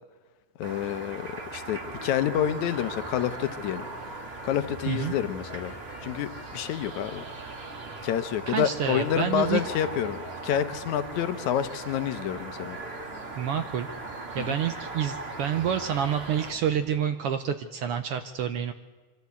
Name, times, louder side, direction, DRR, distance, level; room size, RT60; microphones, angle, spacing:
voice 1, 0.6-3.9 4.4-5.8 6.0-7.2 8.0-12.8 14.4-14.6, left 10 dB, 75° left, 11 dB, 2.2 m, -28 dB
sound 1, 0.6-16.5, right 3 dB, 35° right, 1.0 m, -40 dB
sound 2, 1.8-17.1, equal, 15° left, 2.8 m, -47 dB
voice 2, 8.5-9.6 13.4-13.9 14.3-18.7, right 8 dB, 80° right, 8 dB, 1.3 m, -28 dB
24.5 x 13.0 x 8.2 m, 1.4 s
omnidirectional pair, 3.5 m